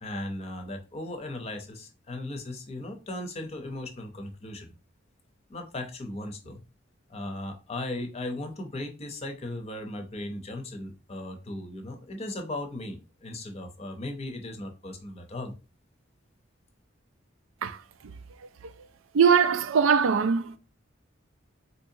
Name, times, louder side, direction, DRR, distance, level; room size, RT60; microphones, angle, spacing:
voice 1, 0.0-4.7 5.5-6.6 7.1-15.5, left 1 dB, 30° left, 0.7 m, -37 dB
voice 2, 19.1-20.6, right 6 dB, 85° right, 0.4 m, -21 dB
4.2 x 2.7 x 2.7 m
head